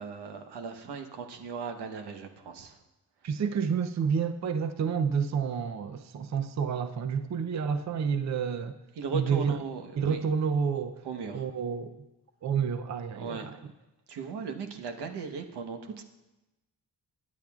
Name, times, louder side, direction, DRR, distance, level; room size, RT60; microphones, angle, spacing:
voice 1, 0.0-2.8 8.9-10.2 11.0-11.5 13.1-13.5 14.1-16.0, right 5 dB, 85° right, 5 dB, 1.1 m, -37 dB
voice 2, 3.2-8.8 9.1-9.6 10.0-11.0 11.3-12.0 12.4-13.6, right 6 dB, 45° right, 8 dB, 0.6 m, -29 dB
21.5 x 9.0 x 2.4 m, 1.0 s
cardioid pair, 100°, 39 cm